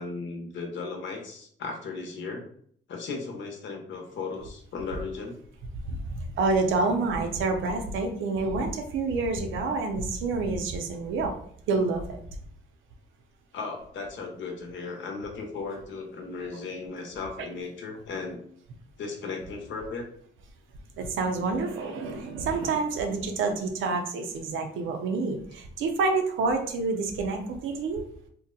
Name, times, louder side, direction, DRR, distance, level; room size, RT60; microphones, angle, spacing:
voice 1, 0.0-2.4 2.9-5.4 13.5-18.4 19.0-20.1, left 4 dB, 70° left, 2 dB, 0.9 m, -36 dB
voice 2, 5.8-11.4 11.7-12.2 17.4-17.5 21.0-28.1, right 3 dB, 80° right, 4 dB, 0.6 m, -28 dB
2.8 x 2.1 x 3.7 m, 0.62 s
cardioid pair, 90°, 20 cm